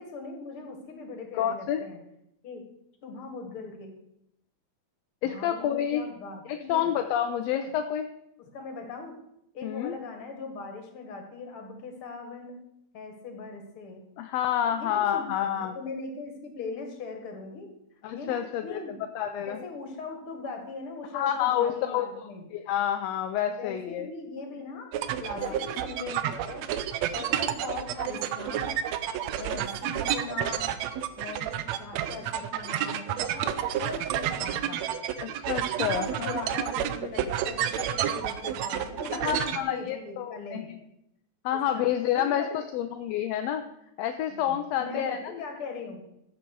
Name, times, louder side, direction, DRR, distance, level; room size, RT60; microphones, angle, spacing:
voice 1, 0.0-2.0 2.4-2.6 3.0-3.9 5.2-6.9 7.5-7.7 8.4-9.2 9.5-12.6 12.9-14.0 14.6-17.7 18.1-19.0 19.4-22.4 23.6-24.9 25.2-26.7 27.1-28.8 29.4-30.7 31.2-34.8 35.8-40.7 41.5-41.9 42.1-42.7 44.3-46.0, left 4 dB, 50° left, 4 dB, 2.4 m, -40 dB
voice 2, 1.4-1.8 5.2-6.0 6.5-8.1 9.6-9.9 14.2-15.7 18.0-18.8 19.2-19.6 21.1-22.1 22.5-24.1 25.4-25.6 25.9-26.0 35.2-36.5 39.1-40.8 41.4-43.7 44.0-45.4, left 10 dB, 75° left, 7 dB, 1.6 m, -29 dB
sound 1, 24.9-39.6, right 10 dB, 75° right, 1.8 m, -30 dB
14.5 x 7.4 x 4.7 m, 0.79 s
omnidirectional pair, 3.3 m